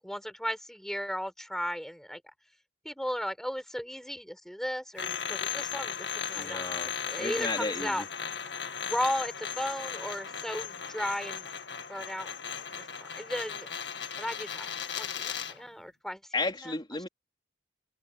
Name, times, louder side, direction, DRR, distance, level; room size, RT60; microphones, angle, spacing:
voice 1, 0.0-2.2 2.8-6.6 7.1-8.0 8.8-11.5 11.9-12.3 12.8-16.2 16.6-16.7, equal, ahead, 4.2 m, -35 dB
sound 1, 5.0-15.6, left 7 dB, 65° left, 2.0 m, -37 dB
voice 2, 6.3-6.9 7.2-8.0 16.3-17.1, left 3 dB, 25° left, 3.0 m, -33 dB
head